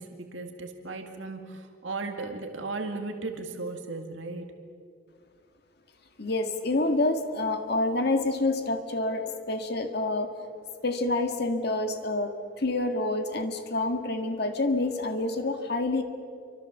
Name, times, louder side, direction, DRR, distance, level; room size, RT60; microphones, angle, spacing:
voice 1, 0.0-4.5, right 3 dB, 85° right, 4 dB, 2.1 m, -36 dB
voice 2, 6.2-10.3 10.8-16.0, left 2 dB, 55° left, 6 dB, 1.7 m, -27 dB
28.5 x 25.0 x 7.2 m, 2.4 s
head